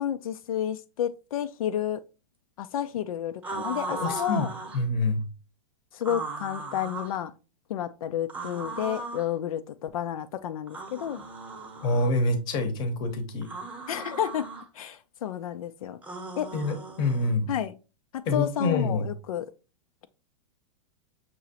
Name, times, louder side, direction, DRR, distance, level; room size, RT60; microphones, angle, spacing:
voice 1, 0.0-2.0 2.6-4.5 5.9-7.3 7.7-11.2 13.9-14.5 14.7-16.0 16.4-16.5 17.5-17.8 18.3-19.5, left 10 dB, 85° left, 0.4 m, -31 dB
Say Aaaaaah, 3.4-4.8 6.0-7.2 8.3-9.3 10.7-12.1 13.4-14.6 16.0-17.3, right 3 dB, 10° right, 0.8 m, -37 dB
voice 2, 4.0-4.5 4.7-5.2 11.8-13.5 16.5-17.5 18.3-19.0, left 2 dB, 25° left, 0.8 m, -26 dB
6.2 x 2.9 x 2.8 m
supercardioid pair, 160°, 18 cm